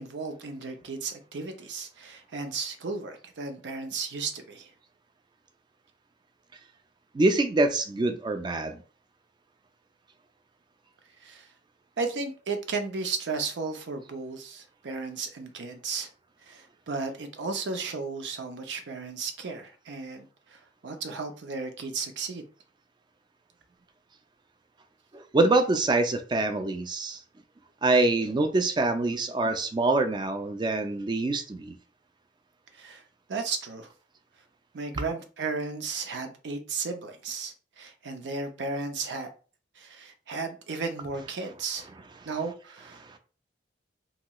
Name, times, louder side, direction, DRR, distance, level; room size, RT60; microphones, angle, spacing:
voice 1, 0.0-4.7 11.2-11.5 12.0-16.1 16.4-22.4 32.7-33.0 33.3-33.9 34.7-39.3 39.8-41.9 42.2-43.0, right 4 dB, 75° right, 0.5 m, -34 dB
voice 2, 7.1-8.8 25.1-27.2 27.8-31.8 35.0-35.1 43.0-43.2, right 2 dB, 25° right, 0.3 m, -25 dB
2.9 x 2.9 x 2.2 m
head